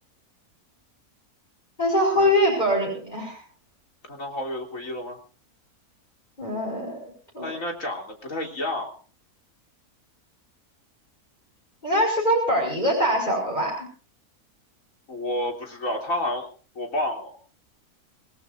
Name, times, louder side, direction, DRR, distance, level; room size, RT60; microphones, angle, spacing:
voice 1, 1.8-3.4 6.4-7.0 7.3-7.6 11.8-13.9, equal, 30° left, -3 dB, 5.8 m, -23 dB
voice 2, 4.1-5.2 7.4-8.9 15.1-16.5 16.8-17.4, left 1 dB, 60° left, 1 dB, 3.7 m, -30 dB
26.5 x 18.0 x 2.7 m, 0.39 s
omnidirectional pair, 1.6 m